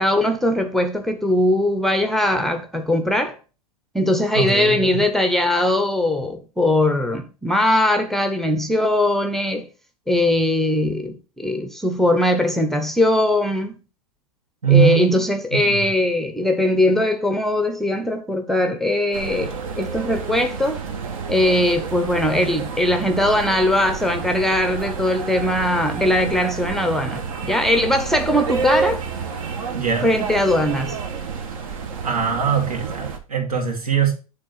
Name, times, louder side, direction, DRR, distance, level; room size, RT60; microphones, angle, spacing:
voice 1, 0.0-3.4 3.9-9.7 10.1-13.8 14.7-20.8 21.3-29.0 30.0-31.0, left 1 dB, ahead, 0.6 m, -20 dB
voice 2, 4.3-5.0 14.6-15.1 15.6-15.8 29.7-30.1 32.0-34.1, right 7 dB, 80° right, 2.6 m, -21 dB
sound 1, 19.1-33.2, right 5 dB, 60° right, 1.4 m, -29 dB
8.7 x 3.5 x 5.5 m
hypercardioid pair, 115°, 19 cm